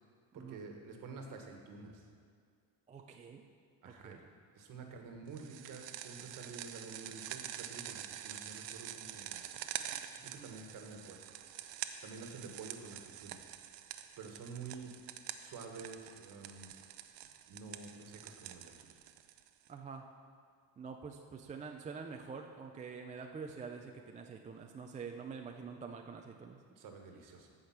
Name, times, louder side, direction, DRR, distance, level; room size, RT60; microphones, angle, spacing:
voice 1, 0.3-2.1 3.8-4.2 4.5-9.5 10.2-11.2 12.0-13.5 14.2-14.9 15.4-16.7 17.5-18.7 26.8-27.5, right 4 dB, 50° right, 3 dB, 1.5 m, -49 dB
voice 2, 2.9-3.4 3.8-4.2 4.8-5.0 10.2-10.5 19.7-20.1 20.8-26.6, right 5 dB, 20° right, 3 dB, 0.4 m, -46 dB
sound 1, 5.4-19.7, right 12 dB, 80° right, 0.7 m, -46 dB
15.0 x 5.1 x 5.9 m, 2.1 s
cardioid pair, 140°, 41 cm